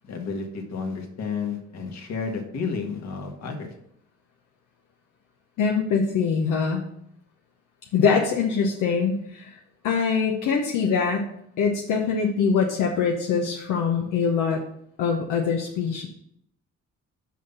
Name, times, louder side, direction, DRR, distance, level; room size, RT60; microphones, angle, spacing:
voice 1, 0.0-3.7, left 5 dB, 60° left, 3 dB, 1.7 m, -31 dB
voice 2, 5.6-6.8 7.9-9.5 9.8-11.3 11.6-14.6 15.0-16.1, left 5 dB, 85° left, 1 dB, 0.9 m, -23 dB
6.2 x 5.7 x 5.5 m, 0.73 s
cardioid pair, 90°, 30 cm